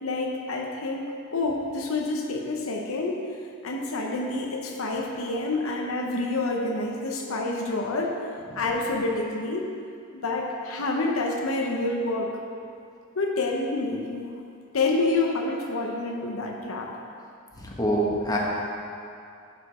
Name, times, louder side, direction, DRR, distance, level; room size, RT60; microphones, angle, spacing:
voice 1, 0.0-3.3 3.6-8.2 8.6-9.7 10.1-12.3 13.2-14.3 14.7-16.9, left 2 dB, 75° left, 1 dB, 0.8 m, -28 dB
voice 2, 17.5-18.4, right 1 dB, 20° left, -4 dB, 1.3 m, -26 dB
11.5 x 5.1 x 4.9 m, 2.5 s
head